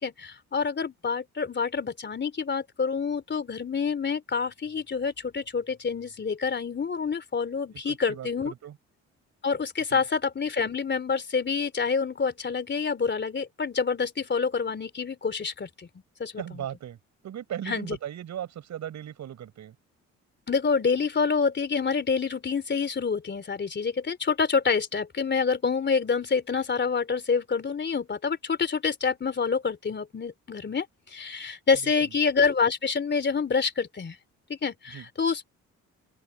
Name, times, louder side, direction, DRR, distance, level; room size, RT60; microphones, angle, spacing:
voice 1, 0.0-8.5 9.4-15.9 16.2-16.6 17.7-17.9 20.5-34.2 34.5-35.4, left 5 dB, 35° left, 3.4 m, -27 dB
voice 2, 7.7-8.8 9.9-10.0 16.4-17.0 17.2-19.7 31.8-32.1 34.9-35.1, right 10 dB, 65° right, 6.7 m, -38 dB
open air
cardioid pair, 90°, 30 cm